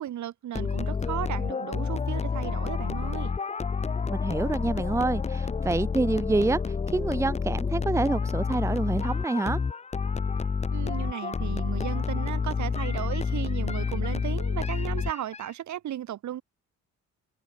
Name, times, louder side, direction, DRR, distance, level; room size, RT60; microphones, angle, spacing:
voice 1, 0.0-3.4 10.7-16.4, right 11 dB, 70° right, 2.3 m, -35 dB
sound 1, 0.6-15.5, left 5 dB, 20° left, 0.7 m, -29 dB
voice 2, 4.1-9.6, right 2 dB, 10° right, 0.8 m, -27 dB
cardioid pair, 90°, 30 cm